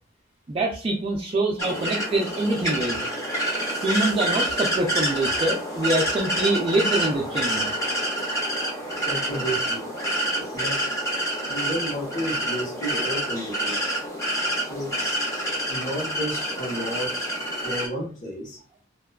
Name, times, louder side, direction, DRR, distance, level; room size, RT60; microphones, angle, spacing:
voice 1, 0.5-3.0 3.8-7.7, right 2 dB, 30° right, 0 dB, 0.3 m, -25 dB
sound 1, 1.6-17.9, right 1 dB, 15° left, 0.5 m, -27 dB
voice 2, 8.9-9.9 10.4-10.9 11.5-13.8 14.7-15.2 15.7-17.4 17.6-18.6, right 1 dB, 40° left, -2 dB, 0.8 m, -32 dB
2.5 x 2.2 x 2.2 m, 0.40 s
head